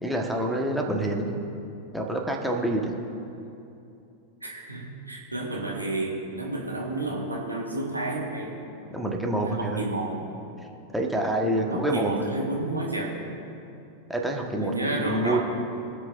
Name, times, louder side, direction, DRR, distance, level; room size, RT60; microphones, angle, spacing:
voice 1, 0.0-1.4 1.9-2.9 8.9-9.9 10.9-12.3 14.1-15.4, right 1 dB, ahead, -1 dB, 1.4 m, -27 dB
voice 2, 4.4-8.5 9.3-10.3 11.5-13.2 14.6-15.4, right 2 dB, 85° right, -2 dB, 1.6 m, -31 dB
23.5 x 7.9 x 2.6 m, 2.7 s
figure-of-eight pair, 90°, 0 cm